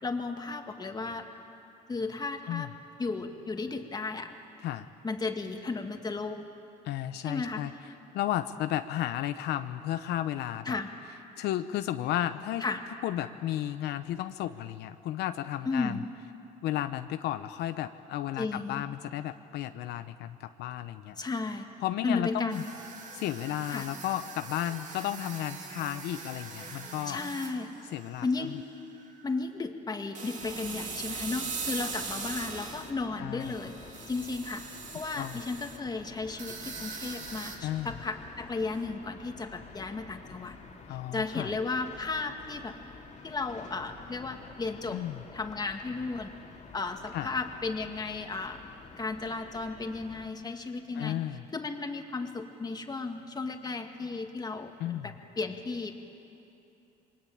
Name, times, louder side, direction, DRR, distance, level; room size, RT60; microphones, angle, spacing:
voice 1, 0.0-1.3 1.9-2.7 3.0-4.3 5.0-6.4 7.2-7.6 10.7-10.9 12.6-12.8 15.7-16.1 18.4-18.9 21.2-21.7 22.0-22.7 23.7-23.9 27.1-27.7 28.2-28.6 29.2-33.8 34.1-34.6 34.9-40.6 41.1-42.8 43.2-45.0 45.3-46.4 46.7-51.2 51.5-55.9, left 3 dB, 25° left, 4 dB, 2.2 m, -34 dB
voice 2, 6.8-7.7 8.1-10.8 11.4-12.6 13.0-16.0 16.6-21.2 21.8-22.6 23.1-27.2 27.9-28.3 31.8-31.9 33.2-33.5 35.2-35.4 37.6-37.9 40.9-41.5 44.9-45.2 47.1-47.3 50.9-51.4 54.8-55.1, left 12 dB, 80° left, 9 dB, 0.8 m, -33 dB
sound 1, 22.5-28.6 29.0-29.3 30.1-32.9 33.4-35.8 36.3-38.2 38.6-38.9, right 5 dB, 45° right, 2.9 m, -41 dB
sound 2, 30.4-50.3, left 4 dB, 45° left, 2.6 m, -50 dB
27.5 x 22.5 x 8.8 m, 2.8 s
cardioid pair, 110°, 17 cm